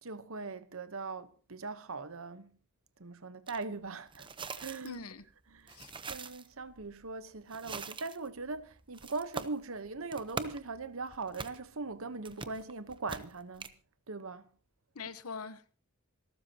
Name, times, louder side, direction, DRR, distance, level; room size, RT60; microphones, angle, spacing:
voice 1, 0.0-2.6 3.0-4.3 4.6-5.0 5.5-5.8 6.1-13.7 14.1-14.5, right 3 dB, 65° right, 1.0 m, -40 dB
sound 1, 3.5-3.6 4.1-13.7, right 4 dB, 20° right, 0.8 m, -44 dB
voice 2, 4.8-5.2 5.7-5.9 14.9-15.8, left 5 dB, 80° left, 1.1 m, -43 dB
27.5 x 12.5 x 2.9 m
head